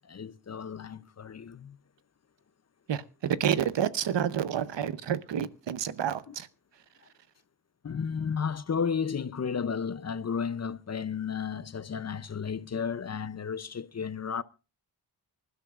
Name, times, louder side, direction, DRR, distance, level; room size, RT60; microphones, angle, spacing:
voice 1, 0.0-1.8 7.8-14.4, left 6 dB, 40° left, 0.6 m, -33 dB
voice 2, 2.9-6.5, right 9 dB, 85° right, 0.8 m, -29 dB
25.5 x 12.0 x 2.4 m
wide cardioid pair, 125°, 42 cm